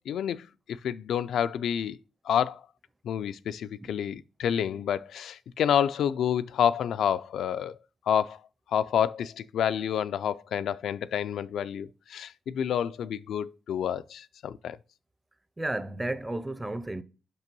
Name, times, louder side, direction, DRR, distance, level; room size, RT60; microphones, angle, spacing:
voice 1, 0.1-0.5 0.8-2.0 2.2-2.6 3.0-7.8 8.1-8.4 8.7-14.8, left 9 dB, 80° left, 0.3 m, -28 dB
voice 2, 15.6-17.0, right 1 dB, 10° right, 0.5 m, -32 dB
6.0 x 5.4 x 5.2 m
wide cardioid pair, 150°, 0 cm